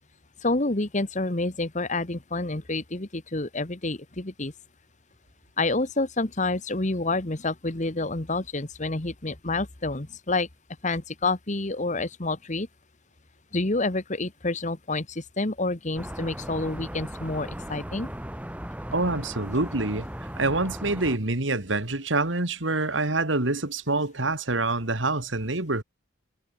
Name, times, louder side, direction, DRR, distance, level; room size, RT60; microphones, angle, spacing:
voice 1, 0.4-4.5 5.6-10.5 10.8-12.7 13.5-18.1, left 2 dB, 40° left, 1.6 m, -28 dB
sound 1, 16.0-21.2, equal, 5° right, 3.3 m, -37 dB
voice 2, 18.9-20.1 20.4-25.8, right 2 dB, 75° right, 2.6 m, -26 dB
head